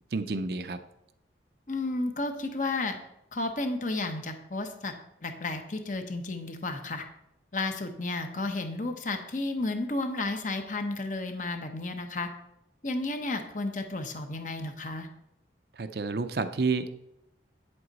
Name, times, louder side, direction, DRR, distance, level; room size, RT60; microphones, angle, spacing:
voice 1, 0.1-0.8 15.7-16.9, right 4 dB, 55° right, 10 dB, 0.5 m, -30 dB
voice 2, 1.7-3.0 3.3-4.9 5.2-7.0 7.5-12.3 12.8-15.1, left 2 dB, 45° left, 6 dB, 0.9 m, -32 dB
8.9 x 7.7 x 4.1 m, 0.85 s
head